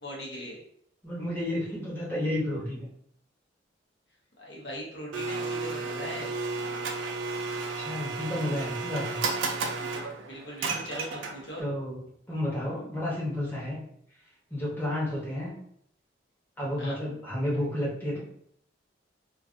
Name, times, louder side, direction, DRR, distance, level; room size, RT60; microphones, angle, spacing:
voice 1, 0.0-0.6 4.4-6.3 10.2-11.6 16.8-17.0, equal, 65° left, -3 dB, 0.9 m, -40 dB
voice 2, 1.0-2.9 7.7-9.2 11.6-13.8 14.5-15.5 16.6-18.2, left 1 dB, 10° left, -6 dB, 0.9 m, -31 dB
Domestic sounds home sounds, 5.1-11.6, right 4 dB, 85° right, 0.4 m, -33 dB
2.4 x 2.3 x 2.5 m, 0.67 s
head